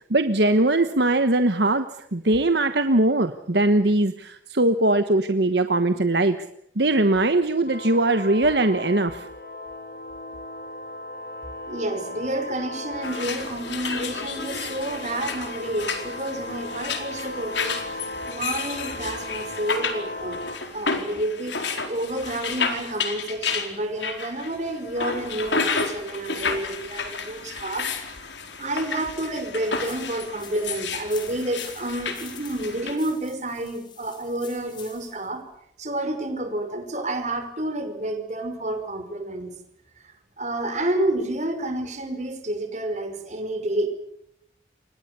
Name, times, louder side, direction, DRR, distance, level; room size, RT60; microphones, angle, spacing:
voice 1, 0.1-1.8 2.1-6.4 6.8-9.3, right 2 dB, 65° right, 9 dB, 1.2 m, -21 dB
sound 1, 7.7-20.6, left 1 dB, 55° left, 3.8 m, -37 dB
voice 2, 11.7-18.0 18.3-20.4 20.7-21.6 21.9-27.9 28.6-35.4 35.8-39.5 40.0-43.9, right 1 dB, 40° right, 6 dB, 5.4 m, -29 dB
sound 2, 13.0-33.0, left 5 dB, 80° left, 4.4 m, -31 dB
sound 3, 29.8-35.3, left 6 dB, 25° left, 4.2 m, -46 dB
29.0 x 25.0 x 6.9 m, 0.76 s
head